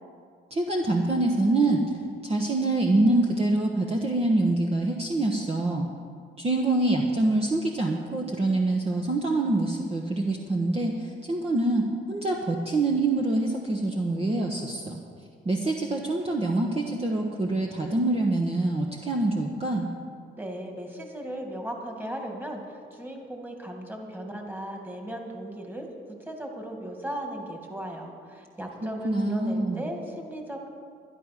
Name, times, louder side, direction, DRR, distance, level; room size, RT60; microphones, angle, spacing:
voice 1, 0.5-1.8 2.2-5.9 6.4-15.0 15.4-19.9 29.0-29.8, right 2 dB, 30° right, 0 dB, 1.2 m, -25 dB
voice 2, 20.4-25.9 26.2-30.7, right 1 dB, 10° right, 2 dB, 2.2 m, -37 dB
12.0 x 11.0 x 6.0 m, 2.2 s
cardioid pair, 90°, 20 cm